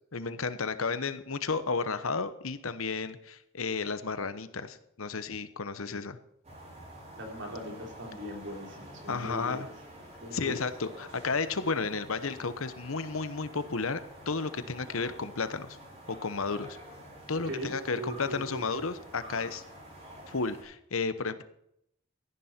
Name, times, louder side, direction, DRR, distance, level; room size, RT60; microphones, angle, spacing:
voice 1, 0.1-6.2 9.1-9.7 10.3-14.0 14.3-15.8 16.1-16.8 17.3-19.6 20.3-21.4, left 4 dB, 75° left, 12 dB, 1.0 m, -32 dB
sound 1, 6.4-20.6, equal, 30° right, 4.9 m, -48 dB
voice 2, 7.2-9.7 10.2-10.5 17.4-18.8, equal, 60° right, 2 dB, 3.7 m, -40 dB
15.5 x 10.5 x 4.4 m, 0.75 s
head